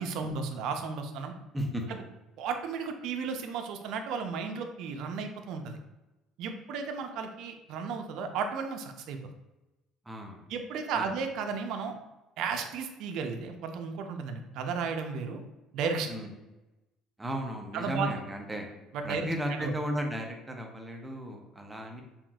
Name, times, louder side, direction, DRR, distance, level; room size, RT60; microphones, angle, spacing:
voice 1, 0.0-1.3 1.9-2.0 2.4-5.8 6.4-9.2 10.5-11.9 12.4-15.4 15.7-16.1 17.7-18.1 18.9-19.3 19.6-19.7, right 5 dB, 65° right, 5 dB, 0.5 m, -34 dB
voice 2, 1.5-2.0 10.1-10.5 10.9-11.1 16.1-16.3 17.2-18.7 19.0-22.0, equal, 10° right, 2 dB, 0.6 m, -35 dB
5.6 x 2.4 x 2.3 m, 1.0 s
cardioid pair, 130°, 0 cm